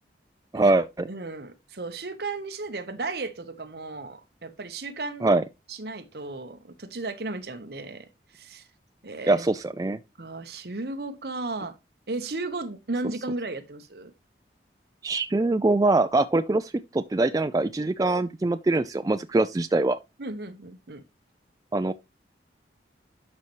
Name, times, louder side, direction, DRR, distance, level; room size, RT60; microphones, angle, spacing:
voice 1, 0.5-1.1 5.2-5.4 9.3-10.0 15.0-20.0 21.7-21.9, right 2 dB, 20° right, 0.3 m, -23 dB
voice 2, 1.1-5.4 5.7-8.1 8.3-8.7 9.0-9.4 10.2-11.7 12.1-14.1 20.2-21.0, right 3 dB, 60° right, 1.0 m, -35 dB
11.0 x 5.4 x 3.0 m
head